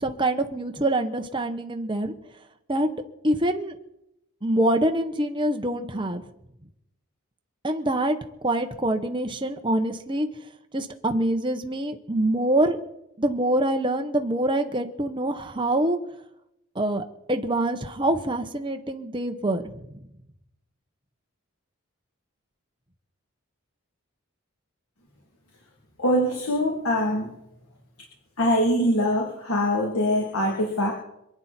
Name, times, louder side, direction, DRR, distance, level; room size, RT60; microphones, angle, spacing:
voice 1, 0.0-2.1 2.7-2.9 3.2-3.8 4.4-6.2 7.6-8.2 8.4-10.3 10.7-12.8 13.2-16.0 16.7-19.6, right 1 dB, 20° right, 5 dB, 1.1 m, -25 dB
voice 2, 26.0-27.3 28.4-30.9, equal, 90° left, -1 dB, 3.0 m, -23 dB
27.0 x 9.5 x 4.4 m, 0.85 s
head